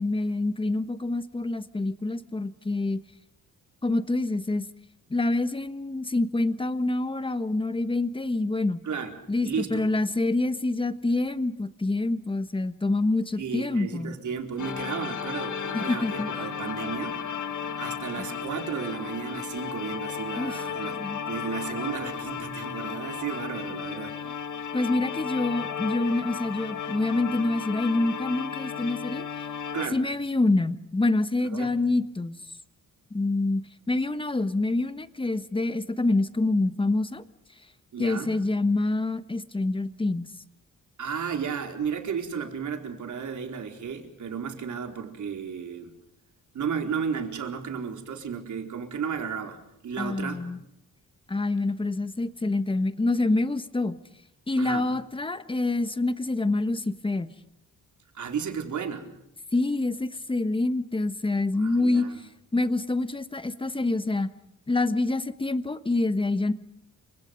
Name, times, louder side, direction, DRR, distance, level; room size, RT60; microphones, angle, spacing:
voice 1, 0.0-3.0 3.8-4.6 5.1-8.8 9.3-14.1 15.7-16.4 20.4-21.2 24.7-29.2 29.9-32.3 33.1-33.6 33.9-37.2 38.0-40.3 50.0-50.6 51.3-54.0 54.5-57.3 59.5-62.1 62.5-64.3 64.7-66.5, left 2 dB, 15° left, 12 dB, 1.4 m, -26 dB
voice 2, 9.4-9.9 13.4-17.2 17.8-24.3 29.7-30.0 31.5-31.8 37.9-38.3 41.0-45.9 46.5-50.5 54.6-54.9 58.1-59.1 61.6-62.2, right 6 dB, 65° right, 4 dB, 4.5 m, -33 dB
sound 1, 14.6-29.9, left 7 dB, 65° left, 2.2 m, -34 dB
30.0 x 26.0 x 5.4 m, 0.81 s
wide cardioid pair, 135°, 32 cm